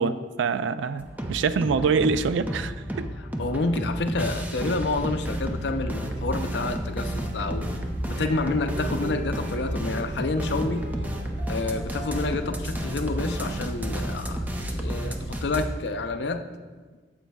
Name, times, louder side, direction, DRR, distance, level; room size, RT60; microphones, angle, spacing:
voice 1, 0.0-3.1, right 5 dB, 85° right, 13 dB, 0.3 m, -25 dB
sound 1, 1.0-15.7, right 1 dB, 10° right, 0.5 m, -31 dB
voice 2, 3.2-7.7 8.1-10.9 11.5-14.4 14.7-15.1 15.4-16.4, left 3 dB, 70° left, 8 dB, 0.5 m, -29 dB
sound 2, 8.2-15.2, right 2 dB, 70° right, 1.5 m, -44 dB
9.2 x 7.4 x 2.3 m, 1.4 s
head